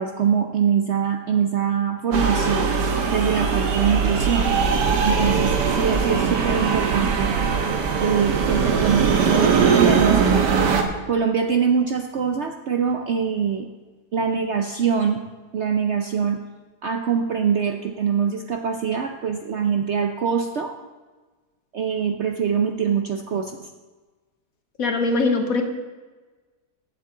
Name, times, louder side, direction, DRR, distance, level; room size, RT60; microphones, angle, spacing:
voice 1, 0.0-2.7 3.1-4.5 5.0-7.4 8.0-10.5 11.1-13.7 14.1-15.2 15.5-16.4 16.8-20.7 21.7-23.7, right 7 dB, 60° right, 5 dB, 0.8 m, -23 dB
sound 1, 2.1-10.8, right 5 dB, 90° right, 1.7 m, -20 dB
voice 2, 24.8-25.6, left 3 dB, 60° left, 5 dB, 1.6 m, -21 dB
15.5 x 8.3 x 3.8 m, 1.3 s
omnidirectional pair, 1.8 m